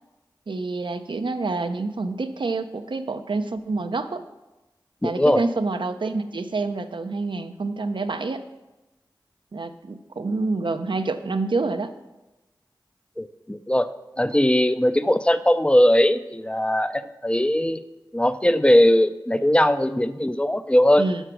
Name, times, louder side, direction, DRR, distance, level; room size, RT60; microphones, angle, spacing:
voice 1, 0.5-4.2 5.0-8.4 9.5-11.9 21.0-21.2, right 3 dB, 70° right, 9 dB, 0.7 m, -27 dB
voice 2, 5.0-5.5 13.2-13.9 14.2-17.8 18.1-21.1, left 1 dB, 15° left, 12 dB, 0.6 m, -20 dB
11.0 x 5.9 x 6.1 m, 1.0 s
wide cardioid pair, 50°, 8 cm